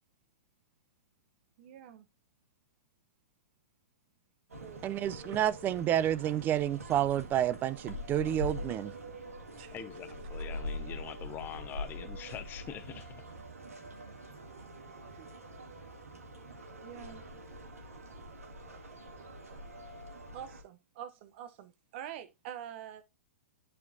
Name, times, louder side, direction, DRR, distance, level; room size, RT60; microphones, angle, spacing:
voice 1, 1.6-2.1 4.6-5.4 9.6-9.7 15.1-15.3 16.8-17.2 20.3-23.0, right 10 dB, 50° right, 0.9 m, -46 dB
sound 1, 4.5-20.6, equal, 85° right, 1.8 m, -44 dB
voice 2, 4.8-8.9, right 11 dB, 25° right, 0.4 m, -29 dB
voice 3, 9.7-13.3, left 10 dB, 25° left, 0.7 m, -44 dB
10.5 x 4.4 x 2.7 m
hypercardioid pair, 115°, 8 cm